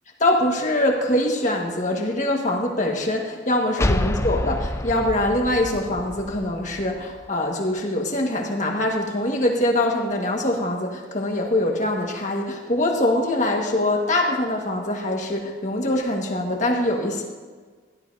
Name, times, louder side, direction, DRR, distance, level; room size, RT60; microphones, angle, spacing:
voice 1, 0.2-17.2, left 1 dB, 40° left, 1 dB, 1.6 m, -23 dB
sound 1, 3.8-7.3, left 1 dB, 15° left, 0.4 m, -28 dB
16.5 x 12.0 x 2.8 m, 1.5 s
head